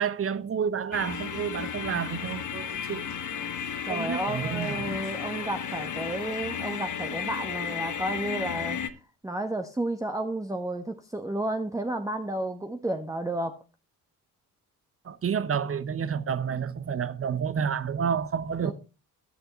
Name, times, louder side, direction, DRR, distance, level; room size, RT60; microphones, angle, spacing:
voice 1, 0.0-3.1 3.9-5.0 15.0-18.7, right 7 dB, 30° right, 0.8 m, -30 dB
sound 1, 0.9-8.9, left 8 dB, 40° left, 1.2 m, -33 dB
sound 2, 1.0-7.4, left 3 dB, 85° left, 6.0 m, -56 dB
voice 2, 3.8-8.8 9.2-13.6 18.6-18.7, right 1 dB, 5° right, 1.0 m, -32 dB
20.5 x 6.8 x 3.0 m
hypercardioid pair, 50°, 48 cm